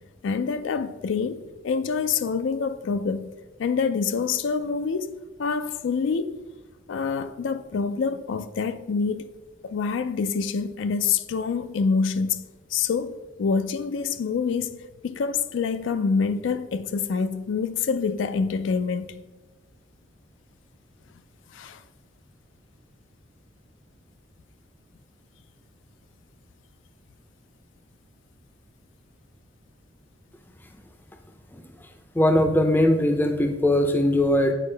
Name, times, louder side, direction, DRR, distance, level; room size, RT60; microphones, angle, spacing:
voice 1, 0.2-3.3 3.6-6.4 6.9-9.3 9.6-13.1 13.4-14.8 15.0-19.2 21.5-21.8, left 5 dB, 75° left, 0.3 m, -26 dB
voice 2, 32.2-34.5, left 1 dB, 10° left, 0.5 m, -20 dB
8.5 x 4.4 x 3.3 m
head